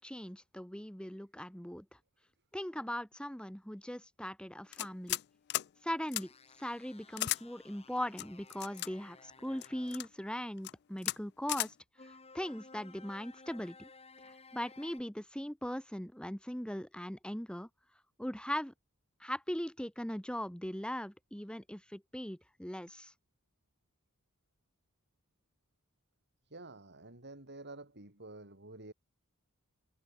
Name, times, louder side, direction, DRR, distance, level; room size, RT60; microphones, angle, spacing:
voice 1, 0.0-1.8 2.5-5.2 5.8-6.3 6.6-11.7 12.0-13.9 14.2-17.7 18.2-18.7 19.2-23.1, equal, 5° left, 1.8 m, -40 dB
sound 1, 4.7-5.2 5.5-5.7 6.1-6.2 7.2-7.4 8.2-8.9 9.6-10.1 10.6-10.7 11.0-11.2 11.5-11.7, left 16 dB, 50° left, 0.3 m, -35 dB
sound 2, 6.2-10.0 12.0-15.0, left 4 dB, 30° left, 5.3 m, -57 dB
voice 2, 26.5-28.9, right 2 dB, 50° right, 6.2 m, -50 dB
head